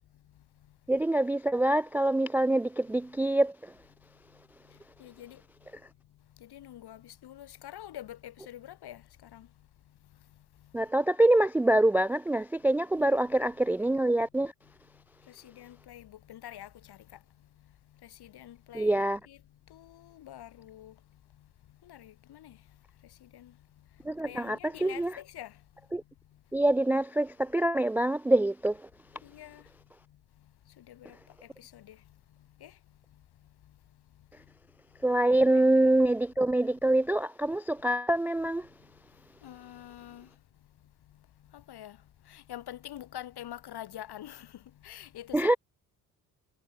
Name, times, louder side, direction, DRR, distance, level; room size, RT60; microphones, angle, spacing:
voice 1, 0.9-3.5 10.7-14.5 18.7-19.2 24.1-25.1 25.9-26.0 26.5-28.7 35.0-38.6 45.3-45.6, right 1 dB, 5° right, 0.3 m, -25 dB
voice 2, 5.0-5.4 6.5-9.0 9.3-9.5 13.0-13.2 15.4-17.0 18.2-19.0 19.3-19.4 19.7-20.9 21.9-22.5 23.3-23.5 24.2-25.5 29.2-29.6 30.9-31.1 31.6-32.0 32.6-32.7 35.5-36.0 39.4-40.3 41.7-42.0 42.3-44.5 44.8-45.6, left 12 dB, 60° left, 3.4 m, -46 dB
hypercardioid pair, 50°, 44 cm